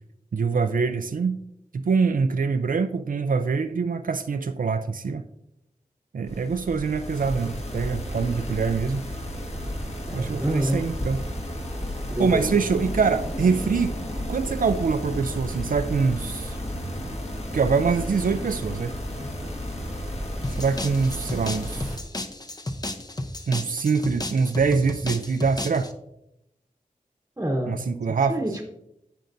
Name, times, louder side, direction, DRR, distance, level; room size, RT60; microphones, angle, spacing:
voice 1, 0.3-1.4 1.7-5.2 6.1-9.0 10.1-11.2 12.2-13.9 14.3-16.6 17.5-18.9 20.6-21.9 23.5-25.9 27.7-28.4, right 5 dB, 75° right, 9 dB, 0.4 m, -24 dB
sound 1, 6.3-22.0, equal, 50° left, 1.6 m, -32 dB
voice 2, 10.0-10.8 12.1-12.6 27.4-27.8 28.3-28.7, right 1 dB, 15° right, 1 dB, 1.0 m, -27 dB
sound 2, 20.4-25.9, left 1 dB, 25° left, 0.7 m, -33 dB
14.0 x 5.6 x 2.6 m, 0.83 s
wide cardioid pair, 80°, 14 cm